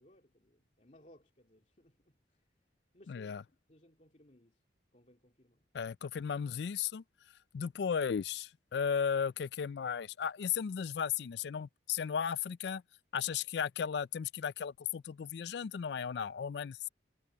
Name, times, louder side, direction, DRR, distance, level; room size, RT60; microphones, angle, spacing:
voice 1, 0.0-2.5 2.9-3.3 3.7-4.6 4.9-5.7, left 1 dB, 40° left, 2.8 m, -63 dB
voice 2, 3.1-3.4 5.7-7.0 7.5-12.8 13.1-16.9, left 7 dB, 65° left, 0.4 m, -35 dB
head